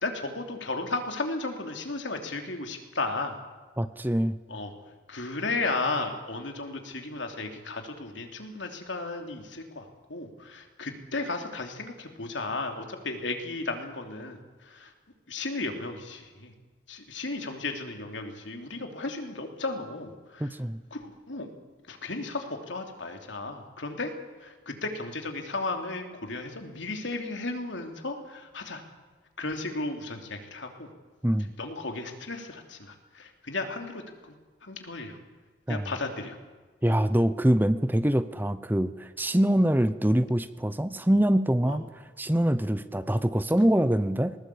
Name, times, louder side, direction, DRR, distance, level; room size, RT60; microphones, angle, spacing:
voice 1, 0.0-3.3 4.5-4.7 5.1-14.4 14.7-14.9 15.3-16.5 16.9-20.5 20.9-21.5 21.9-24.1 24.4-28.8 29.4-30.9 31.6-34.3 34.6-35.2 35.7-36.3 41.7-41.8, left 3 dB, 80° left, 4 dB, 3.1 m, -34 dB
voice 2, 3.8-4.4 20.4-20.8 31.2-31.5 35.7-35.9 36.8-41.8 42.2-44.4, right 1 dB, 10° right, 13 dB, 0.7 m, -24 dB
20.0 x 20.0 x 8.5 m, 1.3 s
head